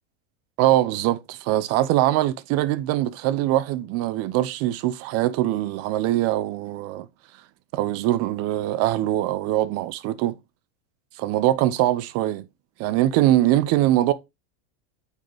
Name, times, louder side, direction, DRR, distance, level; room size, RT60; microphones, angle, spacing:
voice 1, 0.6-7.1 7.7-10.4 11.2-12.4 12.8-14.1, right 14 dB, 45° right, 0.7 m, -22 dB
8.2 x 4.1 x 3.3 m
supercardioid pair, 135°, 35 cm